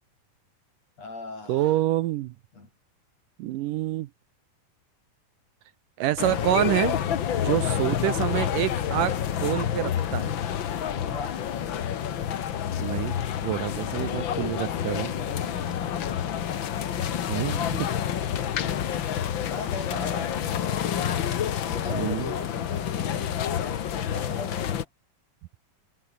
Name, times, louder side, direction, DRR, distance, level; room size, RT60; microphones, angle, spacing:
voice 1, 1.0-1.8 2.5-2.7 11.0-11.5 15.0-16.2 19.5-20.5 21.6-24.9, left 3 dB, 45° left, 9.0 m, -40 dB
voice 2, 1.5-2.3 3.4-4.1 6.0-7.0 7.4-10.3 12.8-13.2 13.4-15.1 17.3-17.9 21.9-22.3, right 15 dB, 75° right, 2.2 m, -27 dB
sound 1, 6.2-24.8, left 9 dB, 80° left, 1.0 m, -28 dB
omnidirectional pair, 4.2 m